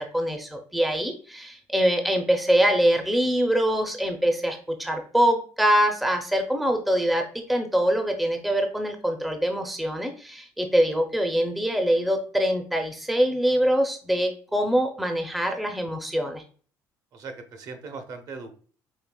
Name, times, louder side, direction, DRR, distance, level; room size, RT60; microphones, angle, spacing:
voice 1, 0.0-7.2 7.5-16.4, equal, ahead, 4 dB, 0.4 m, -24 dB
voice 2, 17.1-18.6, right 4 dB, 50° right, 6 dB, 0.6 m, -39 dB
5.0 x 2.8 x 2.2 m, 0.42 s
cardioid pair, 125°, 8 cm